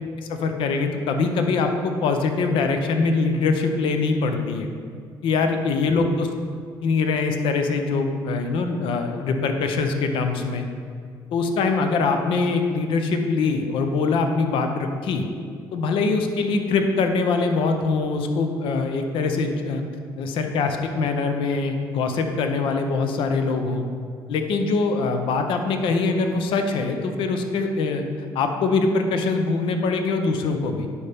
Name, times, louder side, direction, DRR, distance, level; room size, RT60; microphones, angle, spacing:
voice 1, 0.3-4.7 5.2-6.3 6.8-10.7 11.3-15.3 15.7-19.8 20.2-23.9 24.3-28.0 28.3-30.9, left 4 dB, 70° left, 6 dB, 0.7 m, -23 dB
11.0 x 4.3 x 3.5 m, 2.2 s
supercardioid pair, 75°, 9 cm